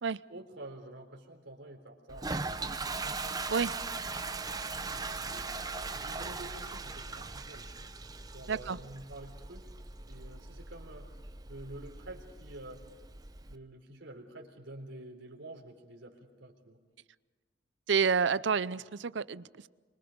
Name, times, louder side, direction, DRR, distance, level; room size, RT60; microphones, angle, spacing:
voice 1, 0.3-3.0 4.9-7.7 8.3-9.7 10.1-11.1 11.5-12.8 13.5-16.8, right 1 dB, 85° right, 2 dB, 4.0 m, -48 dB
Toilet flush, 2.1-13.5, right 3 dB, 20° right, 0.9 m, -39 dB
voice 2, 17.9-19.7, right 6 dB, 70° right, 18 dB, 0.6 m, -29 dB
25.0 x 23.0 x 5.2 m, 1.5 s
head